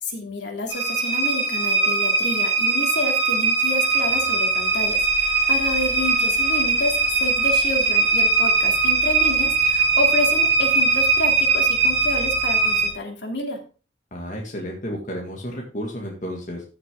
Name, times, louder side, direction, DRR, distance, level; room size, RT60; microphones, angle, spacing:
voice 1, 0.0-13.6, left 2 dB, 65° left, 2 dB, 3.0 m, -29 dB
sound 1, 0.7-12.9, right 4 dB, 30° right, 6.9 m, -20 dB
voice 2, 14.1-16.6, equal, 45° left, -1 dB, 2.1 m, -32 dB
14.5 x 6.6 x 3.7 m, 0.36 s
head